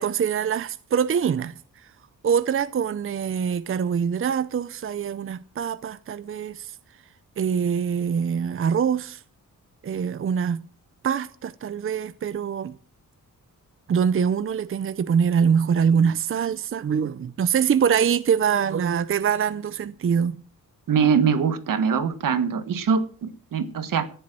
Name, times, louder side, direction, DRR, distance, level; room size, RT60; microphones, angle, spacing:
voice 1, 0.0-1.9 2.2-6.8 7.4-9.2 9.8-10.6 11.0-12.8 13.9-20.4, right 7 dB, 40° right, 0.6 m, -24 dB
voice 2, 20.9-24.1, right 6 dB, 75° right, 1.7 m, -23 dB
14.5 x 10.5 x 6.1 m
wide cardioid pair, 160°, 33 cm